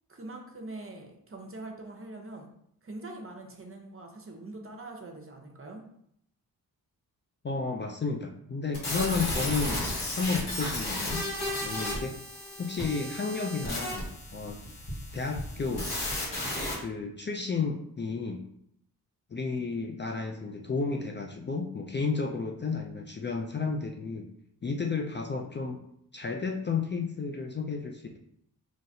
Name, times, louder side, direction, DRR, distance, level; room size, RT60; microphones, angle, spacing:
voice 1, 0.1-2.5 2.8-5.8, right 2 dB, 35° right, 2 dB, 0.9 m, -43 dB
voice 2, 7.4-9.8 10.2-11.2 11.6-12.2 12.6-14.6 15.1-15.9 16.8-18.4 19.3-24.3 24.6-25.8 26.1-28.2, left 4 dB, 30° left, 2 dB, 0.4 m, -32 dB
sound 1, 8.7-16.7, left 1 dB, 75° left, 1.4 m, -34 dB
3.9 x 3.1 x 2.7 m, 0.72 s
cardioid pair, 60°, 38 cm